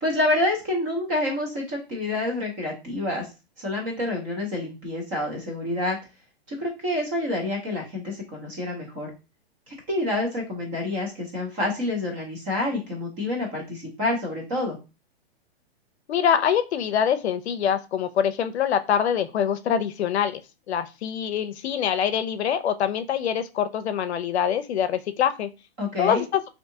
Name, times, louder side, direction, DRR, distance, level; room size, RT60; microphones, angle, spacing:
voice 1, 0.0-3.3 3.6-6.0 6.5-9.1 9.7-14.8 25.8-26.2, left 2 dB, 15° right, -1 dB, 0.5 m, -28 dB
voice 2, 16.1-20.4 20.7-25.5 26.0-26.4, left 8 dB, 85° left, 10 dB, 0.6 m, -24 dB
3.5 x 2.7 x 2.6 m, 0.28 s
hypercardioid pair, 165°, 32 cm